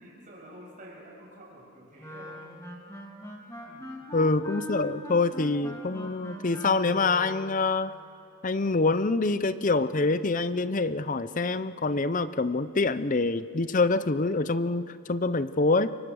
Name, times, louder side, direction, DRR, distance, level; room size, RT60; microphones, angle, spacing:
voice 1, 0.0-2.5 3.6-4.1, equal, 35° right, -2 dB, 6.8 m, -49 dB
Wind instrument woodwind instrument, 2.0-7.7, equal, 15° left, 3.0 m, -41 dB
voice 2, 4.1-7.9 8.4-16.0, left 3 dB, 35° left, 14 dB, 0.6 m, -26 dB
29.0 x 24.0 x 6.4 m, 2.5 s
head